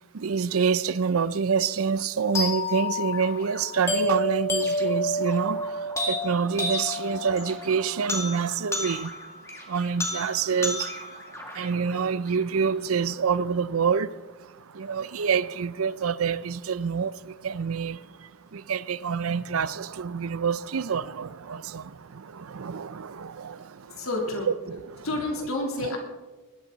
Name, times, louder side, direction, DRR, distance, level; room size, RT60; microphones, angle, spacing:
voice 1, 0.1-9.2 9.7-24.1 24.5-25.1 25.8-26.0, right 6 dB, 85° right, 0.5 m, -27 dB
sound 1, 2.3-12.4, left 1 dB, 15° left, 2.2 m, -31 dB
voice 2, 24.0-24.5 25.0-26.0, left 2 dB, 85° left, 3.3 m, -29 dB
20.0 x 13.0 x 4.0 m
head